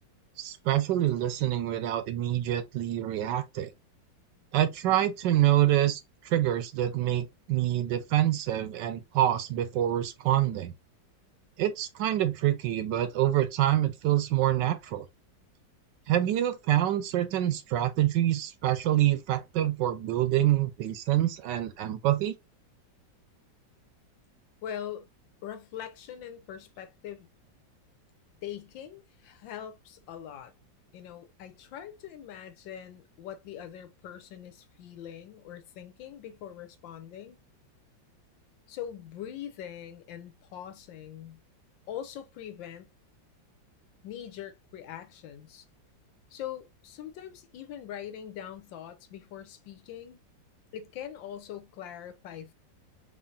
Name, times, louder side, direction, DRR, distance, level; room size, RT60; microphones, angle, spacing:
voice 1, 0.4-3.7 4.5-10.7 11.6-15.0 16.1-22.3, right 13 dB, 75° right, 1.2 m, -26 dB
voice 2, 24.6-25.1 25.4-27.3 28.4-30.5 30.9-37.4 38.7-41.4 41.9-42.9 44.0-45.7 46.3-50.2 50.7-52.5, left 10 dB, 80° left, 1.4 m, -42 dB
4.2 x 3.2 x 2.7 m
omnidirectional pair, 2.1 m